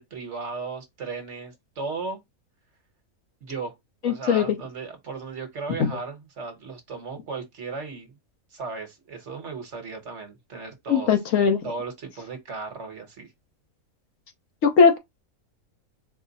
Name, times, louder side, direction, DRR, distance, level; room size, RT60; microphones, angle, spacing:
voice 1, 0.0-2.2 3.4-3.7 4.0-8.1 8.5-11.1 11.6-13.3, right 4 dB, 55° right, 1.3 m, -36 dB
voice 2, 4.0-4.6 5.8-5.9 10.9-11.6 14.6-15.0, left 6 dB, 65° left, 1.2 m, -19 dB
4.6 x 2.0 x 3.9 m
omnidirectional pair, 1.5 m